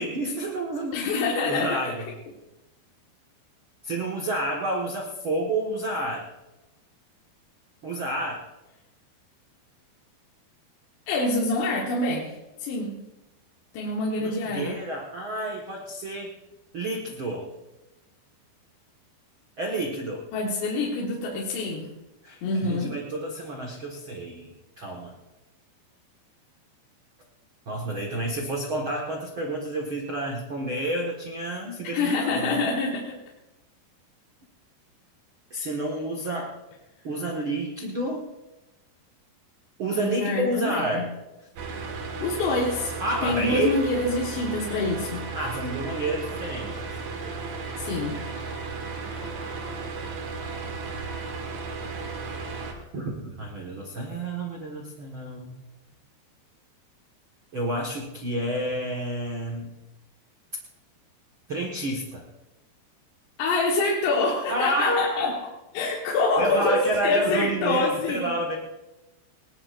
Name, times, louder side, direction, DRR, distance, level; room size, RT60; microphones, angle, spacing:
voice 1, 0.0-1.1 1.5-2.1 3.8-6.2 7.8-8.4 14.2-16.3 16.7-17.4 19.6-20.2 22.2-24.5 24.8-25.2 27.7-32.5 35.5-36.5 37.0-38.3 39.8-41.1 43.0-43.7 45.3-46.8 52.9-55.6 57.5-59.7 61.5-62.2 64.5-65.3 66.4-68.6, right 1 dB, 85° right, -1 dB, 1.1 m, -29 dB
voice 2, 0.9-1.9 11.1-13.0 13.7-14.8 20.3-21.9 22.4-22.9 31.9-33.2 39.9-41.1 42.2-42.9 43.2-45.3 47.8-48.2 63.4-68.3, left 3 dB, 75° left, -3 dB, 3.6 m, -26 dB
sound 1, 41.6-52.7, right 4 dB, 55° right, 2.4 m, -34 dB
20.0 x 18.5 x 2.6 m, 1.0 s
omnidirectional pair, 5.1 m